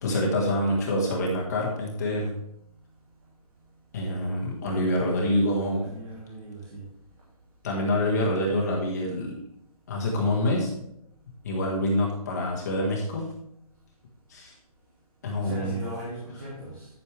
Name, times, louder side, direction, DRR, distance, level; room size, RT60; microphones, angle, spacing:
voice 1, 0.0-2.3 3.9-5.8 7.6-9.4 9.9-10.7 11.4-13.3 14.3-14.5 15.2-15.8, left 1 dB, 25° left, -2 dB, 1.6 m, -26 dB
voice 2, 5.8-6.8 15.4-16.9, right 1 dB, 30° right, -8 dB, 3.0 m, -39 dB
12.0 x 6.8 x 3.3 m, 0.77 s
hypercardioid pair, 175°, 19 cm